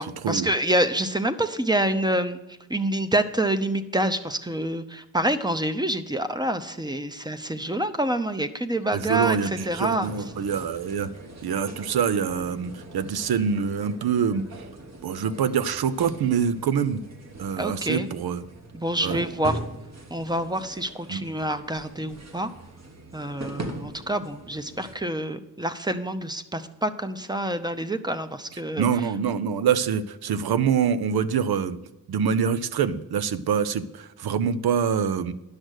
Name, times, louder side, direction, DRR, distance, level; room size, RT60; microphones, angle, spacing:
voice 1, 0.0-2.4 2.7-10.1 17.6-18.1 18.7-19.6 20.1-22.5 23.1-28.9, right 1 dB, 10° right, 10 dB, 0.7 m, -27 dB
sound 1, 8.9-25.0, right 2 dB, 45° right, 1.3 m, -41 dB
voice 2, 8.9-11.1 11.4-14.6 15.0-17.0 17.4-18.4 19.0-19.2 21.1-21.2 28.8-31.8 32.1-35.3, right 7 dB, 75° right, 14 dB, 0.7 m, -25 dB
10.5 x 6.4 x 6.4 m, 1.0 s
cardioid pair, 90°, 37 cm